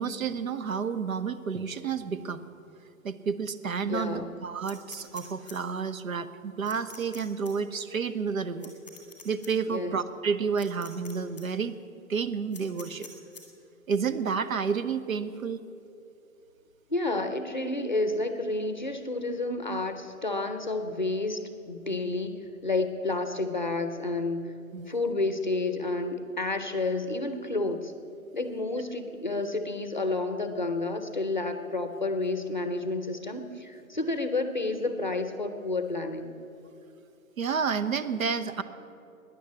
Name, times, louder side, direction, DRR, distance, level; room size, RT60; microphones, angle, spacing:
voice 1, 0.0-2.4 3.0-8.7 9.2-11.7 12.1-13.1 13.9-15.6 24.7-24.9 37.4-38.6, right 6 dB, 70° right, 11 dB, 0.9 m, -30 dB
voice 2, 3.9-4.3 9.7-10.0 16.9-21.4 21.7-24.5 24.9-27.9 28.3-36.3, left 2 dB, 35° left, 8 dB, 0.6 m, -30 dB
sound 1, 4.6-5.5 6.7-7.2 7.4-7.5 8.6-9.5 10.6-11.1 11.4-11.5 12.5-13.4, left 5 dB, 10° left, 1.2 m, -46 dB
13.0 x 10.0 x 8.4 m, 2.7 s
hypercardioid pair, 180°, 43 cm